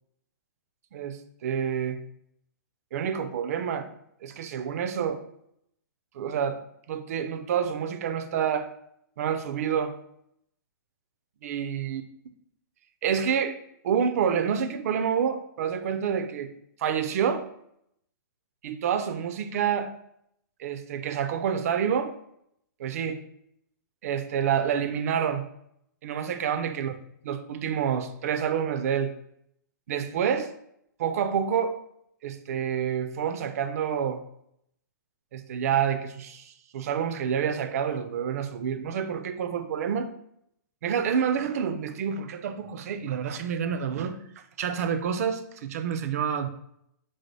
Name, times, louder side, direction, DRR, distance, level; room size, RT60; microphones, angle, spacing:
voice 1, 0.9-2.0 2.9-3.9 4.2-5.2 6.1-6.6 6.9-8.7 9.2-9.9 11.4-12.0 13.0-13.6 13.8-16.5 16.8-17.5 18.6-19.9 20.6-22.1 22.8-23.2 24.0-25.4 26.0-26.9 27.3-29.1 29.9-30.5 31.0-31.8 32.2-34.2 35.3-40.1 40.8-44.2 44.6-46.5, right 8 dB, 45° right, 9 dB, 0.3 m, -28 dB
3.8 x 2.7 x 3.2 m, 0.75 s
hypercardioid pair, 160°, 11 cm